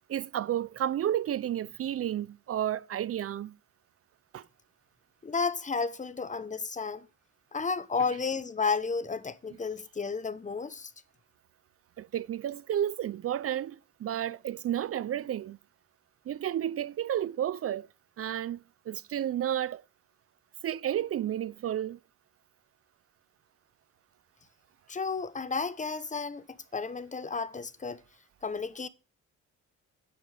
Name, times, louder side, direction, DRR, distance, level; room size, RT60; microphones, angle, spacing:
voice 1, 0.1-3.6 4.3-4.5 12.0-15.6 16.3-17.9 18.2-19.8 20.6-22.0, right 11 dB, 50° right, 0.5 m, -32 dB
voice 2, 5.2-7.1 7.5-10.9 24.9-28.0 28.4-28.9, left 5 dB, 25° left, 0.8 m, -32 dB
10.0 x 9.2 x 3.4 m
cardioid pair, 90°, 30 cm